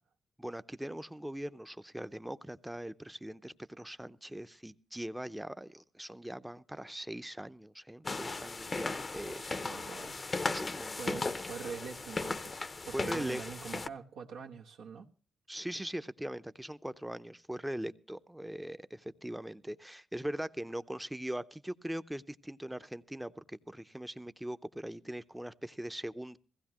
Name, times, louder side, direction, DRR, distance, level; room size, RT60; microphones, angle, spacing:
voice 1, 0.4-9.4 10.5-11.3 12.9-13.4 15.5-26.4, right 1 dB, 10° right, 0.6 m, -41 dB
sound 1, 8.0-13.9, left 3 dB, 40° left, 0.7 m, -37 dB
voice 2, 9.2-10.2 10.9-15.1, right 6 dB, 90° right, 1.1 m, -45 dB
16.0 x 15.5 x 3.0 m
supercardioid pair, 55°, 0 cm